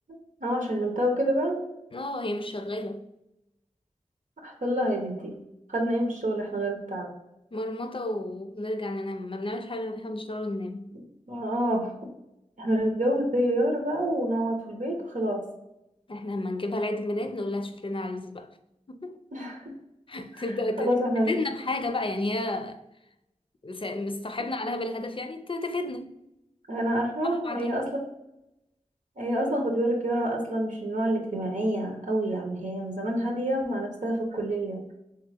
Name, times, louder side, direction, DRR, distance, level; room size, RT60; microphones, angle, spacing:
voice 1, 0.4-1.6 4.4-5.3 5.7-7.1 11.3-11.9 12.6-15.5 19.3-19.8 20.8-21.3 26.7-27.9 29.2-34.8, right 1 dB, 90° right, 0.9 m, -27 dB
voice 2, 1.9-3.1 7.5-10.9 16.1-18.5 18.9-19.2 20.1-20.9 21.2-22.8 23.6-26.1 27.2-27.7, left 2 dB, 45° left, 0.5 m, -32 dB
3.5 x 3.5 x 3.4 m
wide cardioid pair, 55°, 13 cm